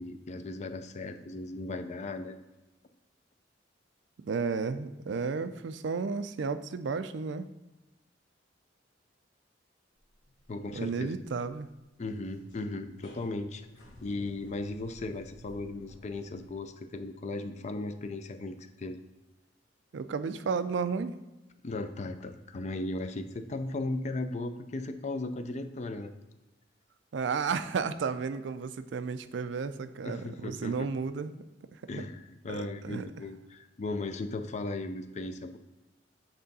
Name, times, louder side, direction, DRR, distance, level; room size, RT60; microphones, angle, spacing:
voice 1, 0.0-2.4 10.5-11.1 12.0-13.7 14.0-19.0 21.6-26.1 30.0-30.9 31.9-35.6, left 2 dB, 40° left, 9 dB, 0.4 m, -37 dB
voice 2, 4.2-7.5 10.7-11.7 19.9-21.1 27.1-31.4 31.9-32.0 32.5-33.1, right 5 dB, 75° right, 11 dB, 0.4 m, -33 dB
sound 1, 10.0-16.5, left 1 dB, 90° left, 1.4 m, -54 dB
8.0 x 3.7 x 4.0 m, 1.0 s
head